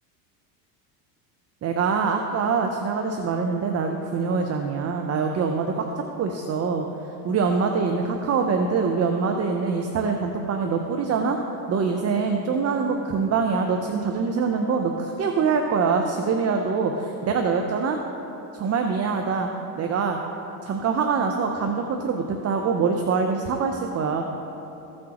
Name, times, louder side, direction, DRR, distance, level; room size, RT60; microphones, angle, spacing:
voice 1, 1.6-5.8 6.2-6.9 7.2-11.4 11.7-18.0 18.5-20.2 20.6-24.2, right 5 dB, 35° right, 4 dB, 0.7 m, -24 dB
15.5 x 6.3 x 3.0 m, 3.0 s
hypercardioid pair, 85°, 46 cm